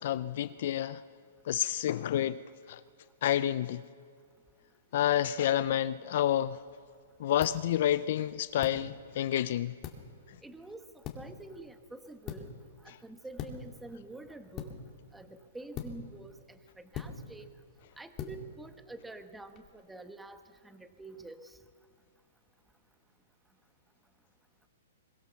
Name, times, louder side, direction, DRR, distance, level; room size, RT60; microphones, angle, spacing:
voice 1, 0.0-1.0 1.4-2.4 2.7-2.8 3.2-3.8 4.9-6.6 7.2-9.7, left 11 dB, 55° left, 0.5 m, -29 dB
sound 1, 6.2-19.7, left 7 dB, 30° left, 2.5 m, -46 dB
voice 2, 10.4-10.8 11.1-12.5 13.0-14.7 15.1-17.5 18.0-20.4 20.6-21.4, right 2 dB, 5° right, 1.3 m, -47 dB
23.0 x 22.0 x 7.0 m
hypercardioid pair, 140°, 0 cm